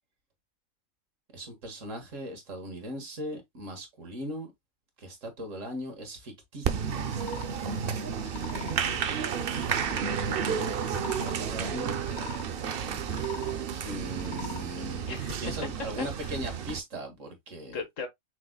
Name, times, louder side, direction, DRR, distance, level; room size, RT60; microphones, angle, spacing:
voice 1, 1.3-4.5 5.0-7.1 9.9-12.0 13.8-17.8, equal, 70° right, 1.9 m, -39 dB
Applause, 6.6-16.8, right 7 dB, 55° right, 0.7 m, -31 dB
sound 1, 7.1-7.5 8.1-8.8 9.4-10.1 10.7-11.4 12.0-12.4 13.0-13.6 14.1-14.6, left 7 dB, 45° left, 0.7 m, -42 dB
voice 2, 7.9-9.1 15.1-15.4 16.0-16.4 17.7-18.1, left 4 dB, 70° left, 1.7 m, -40 dB
5.9 x 3.9 x 2.2 m
omnidirectional pair, 1.4 m